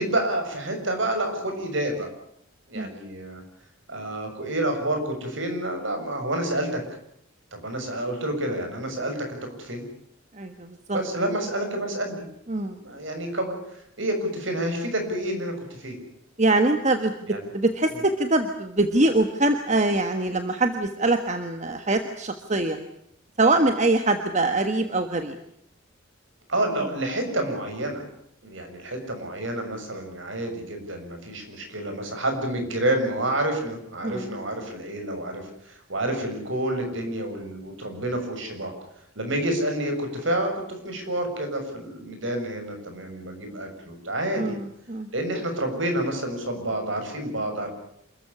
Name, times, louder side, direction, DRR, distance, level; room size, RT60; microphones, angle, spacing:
voice 1, 0.0-2.1 2.7-3.4 3.9-6.8 7.5-9.8 10.9-12.2 12.8-16.0 17.3-17.4 17.9-18.0 26.5-28.0 28.4-38.7 39.1-44.6 45.1-47.7, right 1 dB, 65° right, 5 dB, 6.9 m, -29 dB
voice 2, 10.3-11.0 12.5-12.8 16.4-22.8 23.4-25.4 34.0-34.4 44.4-45.1, right 2 dB, 35° right, 7 dB, 1.5 m, -23 dB
27.5 x 14.5 x 9.8 m, 0.74 s
head